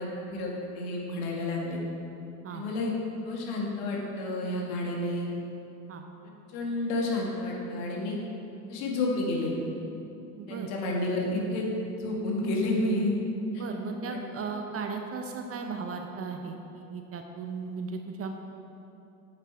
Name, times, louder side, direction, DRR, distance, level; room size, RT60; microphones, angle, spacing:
voice 1, 0.0-1.8 2.5-2.9 3.2-5.3 6.5-8.2 8.7-9.5 10.5-11.7 12.0-13.1 14.1-14.2, left 2 dB, 60° left, -2 dB, 2.1 m, -30 dB
voice 2, 10.4-10.7 13.5-18.3, right 5 dB, 30° right, 4 dB, 0.7 m, -36 dB
8.2 x 8.0 x 4.7 m, 2.9 s
hypercardioid pair, 80°, 48 cm